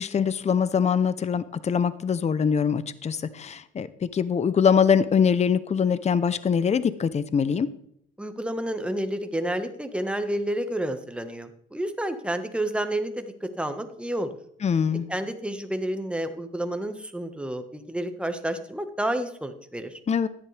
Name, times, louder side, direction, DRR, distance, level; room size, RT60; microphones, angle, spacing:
voice 1, 0.0-7.7 14.6-15.1 20.1-20.3, left 7 dB, 35° left, 15 dB, 0.7 m, -23 dB
voice 2, 8.2-14.3 15.1-20.0, right 1 dB, 5° right, 7 dB, 1.4 m, -30 dB
13.5 x 10.5 x 3.4 m, 0.69 s
cardioid pair, 90°, 20 cm